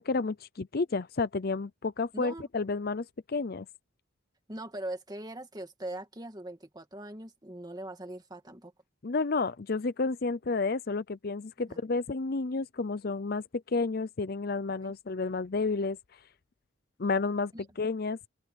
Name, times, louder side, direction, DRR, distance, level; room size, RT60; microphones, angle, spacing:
voice 1, 0.0-3.7 9.0-16.0 17.0-18.3, left 3 dB, 50° left, 0.6 m, -31 dB
voice 2, 2.1-2.5 4.5-8.7 11.7-11.8 14.8-15.0 17.5-17.6, right 1 dB, 20° right, 2.0 m, -41 dB
open air
head